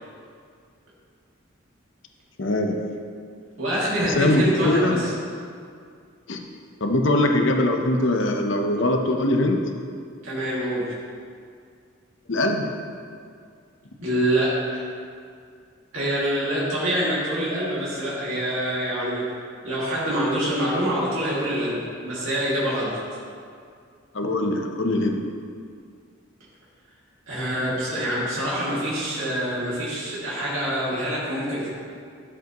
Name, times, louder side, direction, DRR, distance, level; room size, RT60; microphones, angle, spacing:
voice 1, 2.4-2.7 4.0-5.0 6.3-6.4 6.8-9.6 12.3-12.7 24.1-25.2, left 1 dB, 65° left, 3 dB, 0.8 m, -22 dB
voice 2, 3.6-5.1 10.2-10.9 14.0-14.9 15.9-19.3 19.6-23.0 27.3-31.7, right 1 dB, 75° right, -8 dB, 2.3 m, -25 dB
12.0 x 7.8 x 3.0 m, 2.2 s
head